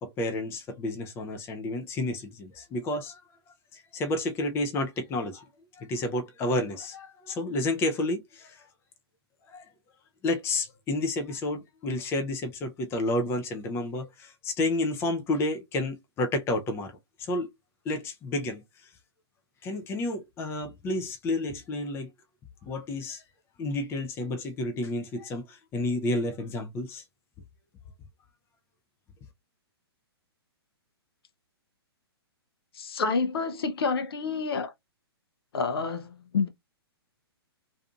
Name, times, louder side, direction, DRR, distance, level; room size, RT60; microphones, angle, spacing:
voice 1, 0.0-3.2 3.7-5.4 5.8-8.6 9.5-9.7 10.2-16.9 17.2-17.5 17.9-18.6 19.6-22.1 22.7-23.2 23.6-27.0, left 2 dB, 20° left, 0.5 m, -30 dB
voice 2, 32.7-34.7 35.5-36.5, left 4 dB, 65° left, 0.6 m, -28 dB
2.6 x 2.4 x 2.3 m
hypercardioid pair, 125°, 14 cm